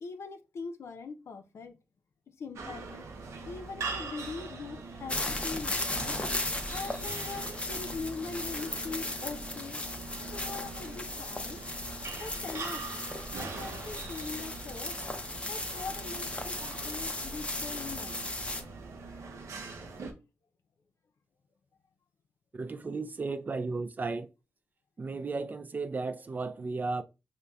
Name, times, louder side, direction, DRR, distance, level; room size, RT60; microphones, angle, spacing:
voice 1, 0.0-1.7 2.4-3.0 3.5-6.2 6.7-9.8 10.3-11.6 12.2-12.8 13.4-14.9 15.5-18.2, left 4 dB, 70° left, 0.5 m, -41 dB
sound 1, 2.6-20.1, right 4 dB, 90° right, 0.6 m, -42 dB
sound 2, 5.1-18.6, left 2 dB, 25° left, 0.6 m, -36 dB
voice 2, 22.5-24.3 25.0-27.0, right 3 dB, 40° right, 0.4 m, -34 dB
5.2 x 2.1 x 2.3 m
cardioid pair, 80°, 5 cm